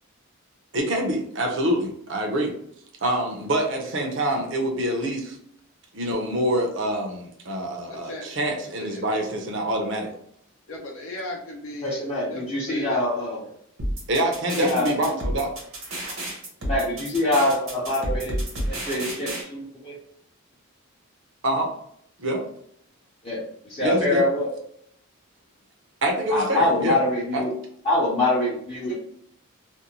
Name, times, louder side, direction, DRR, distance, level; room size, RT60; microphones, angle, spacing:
voice 1, 0.7-2.5 3.0-5.4 5.9-10.1 14.1-15.6 21.4-21.7 22.2-22.4 23.8-24.2 26.0-27.0 27.3-27.4, right 1 dB, 60° right, 2 dB, 0.6 m, -25 dB
voice 2, 7.9-8.3 8.9-9.0 10.7-13.0, left 1 dB, 70° left, -1 dB, 0.6 m, -37 dB
voice 3, 11.8-13.5 14.6-15.0 16.6-18.4 18.6-19.9 23.2-24.5 26.3-27.5 27.8-28.9, left 1 dB, 25° left, -8 dB, 0.6 m, -24 dB
sound 1, 13.8-19.4, right 1 dB, 85° right, 1.2 m, -30 dB
2.5 x 2.1 x 2.9 m, 0.67 s
head